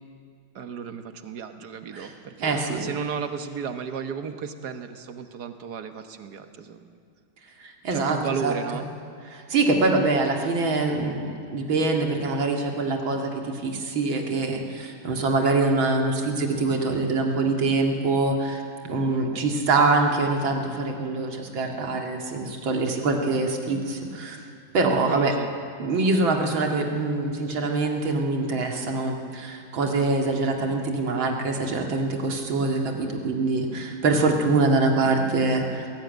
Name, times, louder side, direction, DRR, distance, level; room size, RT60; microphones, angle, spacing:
voice 1, 0.5-7.0 7.9-8.9 19.1-19.3 25.1-25.5, right 6 dB, 60° right, 8 dB, 1.6 m, -34 dB
voice 2, 2.4-2.8 7.6-8.5 9.3-24.5 24.7-25.3 25.8-35.9, right 3 dB, 80° right, 2 dB, 2.9 m, -24 dB
20.0 x 17.5 x 9.3 m, 2.3 s
omnidirectional pair, 2.1 m